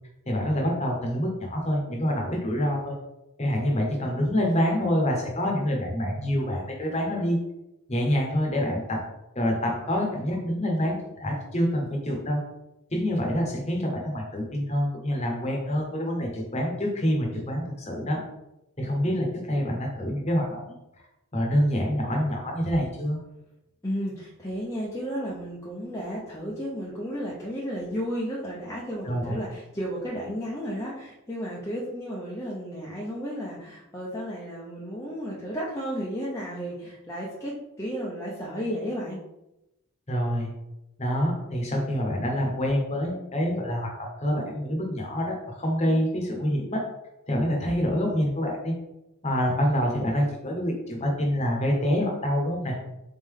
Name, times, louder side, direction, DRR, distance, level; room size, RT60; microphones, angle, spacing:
voice 1, 0.3-2.9 3.4-7.4 7.9-9.0 9.3-12.4 12.9-18.2 18.8-20.7 21.3-23.2 29.0-29.3 40.1-40.5 41.0-46.8 47.3-48.7 49.2-52.8, equal, 30° left, 0 dB, 1.0 m, -26 dB
voice 2, 23.8-39.2, equal, 15° left, -6 dB, 0.6 m, -33 dB
3.9 x 3.6 x 3.6 m, 0.91 s
head